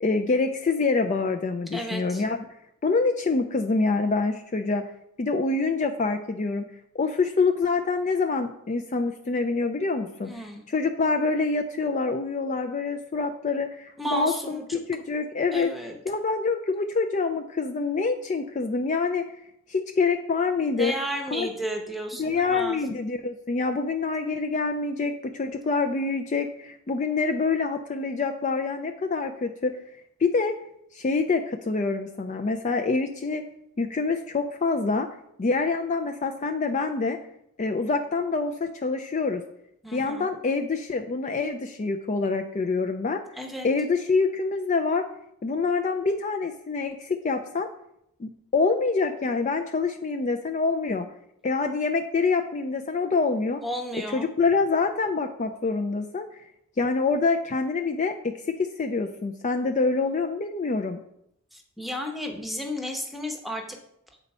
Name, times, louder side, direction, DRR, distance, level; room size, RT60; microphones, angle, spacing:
voice 1, 0.0-2.4 2.8-4.9 5.2-6.7 6.9-14.6 14.9-15.7 16.1-19.2 19.7-20.9 21.3-21.5 22.2-29.8 30.2-30.6 30.9-33.4 33.8-35.1 35.4-37.2 37.6-39.4 39.9-43.2 43.6-45.1 45.4-47.7 48.2-51.1 51.4-53.6 54.1-56.3 56.8-61.0, left 4 dB, 35° left, 6 dB, 0.4 m, -26 dB
voice 2, 1.7-2.2 10.2-10.6 14.0-14.8 15.5-15.9 20.8-22.8 39.8-40.3 43.3-43.7 53.6-54.3 61.5-63.8, equal, ahead, 3 dB, 0.8 m, -33 dB
8.1 x 4.0 x 5.4 m, 0.76 s
head